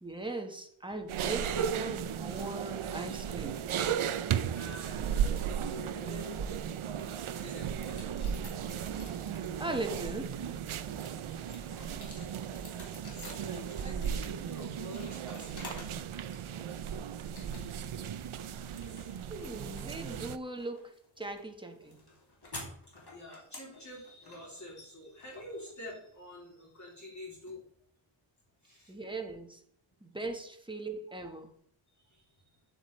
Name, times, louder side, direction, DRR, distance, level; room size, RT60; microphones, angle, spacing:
voice 1, 0.0-3.7 9.6-10.4 19.3-22.0 28.9-29.6 30.0-31.5, right 2 dB, 10° right, 1.3 m, -39 dB
sound 1, 1.1-20.4, right 8 dB, 85° right, 0.6 m, -35 dB
voice 2, 4.5-6.6 7.0-8.0 11.3-11.8 13.0-15.7 17.5-19.1 23.1-27.6 28.6-28.9 32.0-32.6, left 1 dB, 35° left, 3.0 m, -48 dB
sound 2, 7.8-9.8 10.3-16.0 16.3-16.9 17.4-18.0 18.2-26.2, left 2 dB, 50° left, 2.9 m, -51 dB
8.8 x 8.1 x 3.2 m
wide cardioid pair, 90°, 48 cm